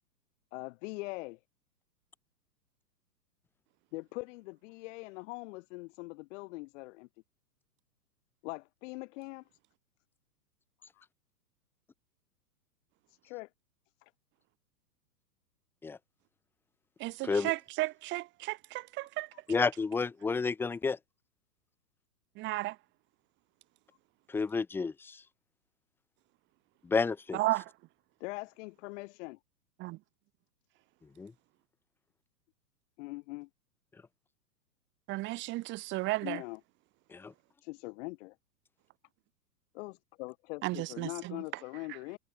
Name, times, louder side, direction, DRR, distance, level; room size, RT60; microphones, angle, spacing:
voice 1, 0.5-1.4 3.9-7.1 8.4-9.4 10.9-11.1 13.1-13.5 14.0-14.1 19.3-19.4 28.2-29.4 33.0-33.5 36.2-36.6 37.6-38.4 39.7-42.2, left 24 dB, 45° left, 6.3 m, -42 dB
voice 2, 17.0-19.3 22.4-22.8 27.3-27.7 29.8-30.0 35.1-36.4 40.6-41.4, right 20 dB, 25° right, 0.8 m, -34 dB
voice 3, 19.5-21.0 24.3-25.2 26.8-27.4 31.2-31.3 37.1-37.3, left 4 dB, 5° left, 0.6 m, -30 dB
hypercardioid pair, 115°, 50 cm